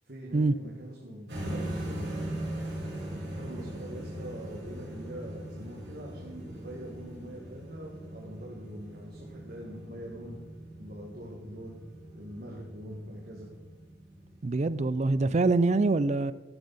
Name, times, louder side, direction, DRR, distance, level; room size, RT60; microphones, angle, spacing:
voice 1, 0.1-2.1 3.1-10.4 10.8-11.7 12.1-13.5, equal, 55° right, -2 dB, 1.7 m, -43 dB
sound 1, 1.3-15.3, right 1 dB, 70° right, 3.9 m, -40 dB
voice 2, 14.4-16.3, right 3 dB, 40° right, 16 dB, 0.4 m, -24 dB
12.5 x 10.5 x 4.1 m, 1.2 s
head